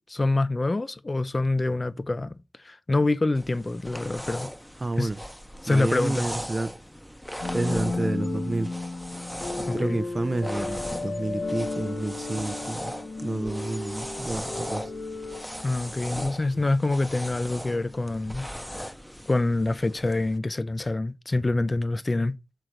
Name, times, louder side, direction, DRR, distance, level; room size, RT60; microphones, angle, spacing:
voice 1, 0.1-2.3 2.6-4.5 5.0-5.1 5.6-6.2 9.7-10.0 15.6-18.5 18.7-18.9 19.3-22.4, left 2 dB, 40° left, 0.4 m, -26 dB
sound 1, 3.3-20.4, equal, 5° left, 0.7 m, -38 dB
voice 2, 4.8-5.2 5.7-6.7 7.5-8.7 9.7-12.9 13.2-14.9 16.2-16.3 16.5-16.6, right 2 dB, 35° right, 0.5 m, -30 dB
sound 2, 7.4-16.4, left 3 dB, 85° left, 0.9 m, -33 dB
6.4 x 3.8 x 4.4 m
wide cardioid pair, 65°, 0 cm